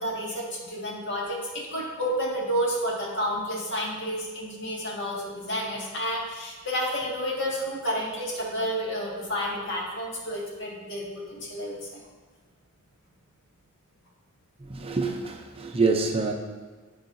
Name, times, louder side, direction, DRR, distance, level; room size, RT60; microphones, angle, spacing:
voice 1, 0.0-12.0, equal, 60° left, -4 dB, 1.9 m, -30 dB
voice 2, 14.7-16.3, right 4 dB, 25° right, 2 dB, 0.6 m, -26 dB
13.5 x 4.7 x 2.7 m, 1.4 s
head